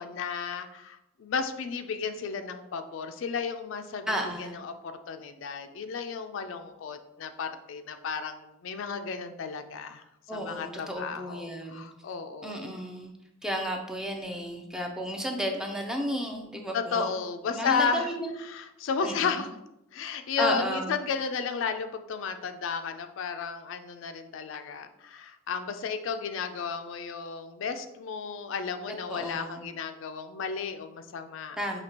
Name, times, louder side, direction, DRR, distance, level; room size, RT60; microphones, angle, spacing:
voice 1, 0.0-12.7 16.7-18.1 18.5-19.5 19.9-31.6, left 5 dB, 65° left, 8 dB, 0.4 m, -33 dB
voice 2, 4.1-4.6 10.3-11.8 12.4-13.1 13.4-17.1 17.5-18.4 19.0-19.4 20.4-21.0 29.1-29.6 31.6-31.8, equal, 5° right, 2 dB, 0.4 m, -33 dB
5.9 x 2.8 x 2.8 m, 0.90 s
head